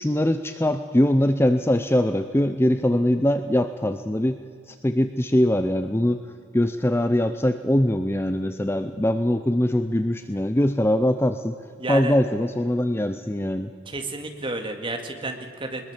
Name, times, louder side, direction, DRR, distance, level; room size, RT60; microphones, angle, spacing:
voice 1, 0.0-4.4 4.7-6.2 6.5-11.6 11.9-13.7, left 1 dB, 10° left, 9 dB, 0.6 m, -22 dB
voice 2, 11.8-12.2 13.9-15.9, right 2 dB, 25° right, 4 dB, 2.1 m, -31 dB
21.5 x 21.0 x 7.5 m, 2.2 s
head